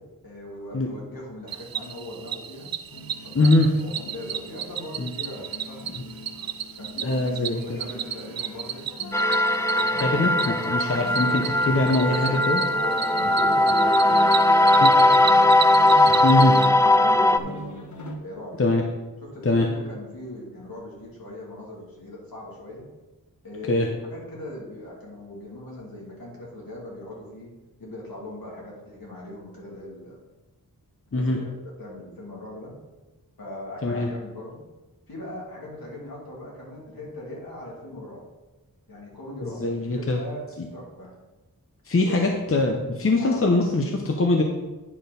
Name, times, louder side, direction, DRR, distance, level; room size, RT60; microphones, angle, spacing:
voice 1, 0.2-2.7 3.2-3.5 3.8-5.9 6.8-7.3 7.6-8.8 9.7-10.7 12.3-15.5 16.0-17.9 18.2-18.8 19.2-22.9 23.4-27.5 27.8-30.2 31.1-31.5 31.8-32.7 33.4-34.6 35.1-38.2 38.9-41.1 42.0-42.4 43.2-43.5, left 1 dB, 75° left, -5 dB, 2.8 m, -40 dB
Cricket, 1.5-16.7, right 9 dB, 75° right, 0.5 m, -33 dB
sound 1, 2.9-18.1, left 2 dB, 55° left, 1.2 m, -42 dB
voice 2, 3.3-3.7 5.0-5.1 7.0-7.8 10.0-12.6 14.8-14.9 16.2-16.5 18.6-18.8 19.4-19.7 23.7-23.9 31.1-31.4 33.8-34.1 39.4-40.2 41.8-44.4, left 2 dB, 40° left, 1 dB, 0.8 m, -22 dB
sound 2, 9.1-17.4, left 1 dB, 10° left, 0.3 m, -19 dB
9.8 x 4.4 x 5.3 m, 1.1 s
wide cardioid pair, 85°, 36 cm